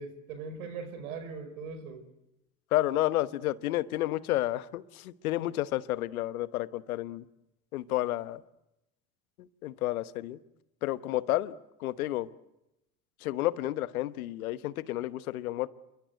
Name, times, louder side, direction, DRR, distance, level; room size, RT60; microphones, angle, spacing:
voice 1, 0.0-2.0, right 4 dB, 80° right, 10 dB, 5.1 m, -40 dB
voice 2, 2.7-7.2 7.7-8.4 9.4-10.4 10.8-11.5 11.8-12.3 13.2-15.7, left 15 dB, 85° left, 14 dB, 1.1 m, -31 dB
28.0 x 23.5 x 8.1 m, 0.90 s
hypercardioid pair, 75°, 42 cm